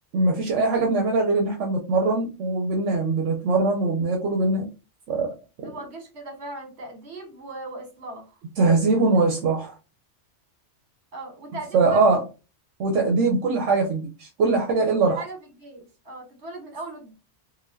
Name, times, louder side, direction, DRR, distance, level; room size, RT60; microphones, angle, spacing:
voice 1, 0.1-4.7 5.1-5.3 8.6-9.7 11.7-12.2 12.8-15.2, right 3 dB, 80° right, 1 dB, 1.1 m, -22 dB
voice 2, 5.6-8.4 8.7-8.8 11.1-12.0 15.0-17.1, right 2 dB, 65° right, 3 dB, 1.6 m, -38 dB
4.2 x 2.2 x 2.6 m, 0.30 s
omnidirectional pair, 1.2 m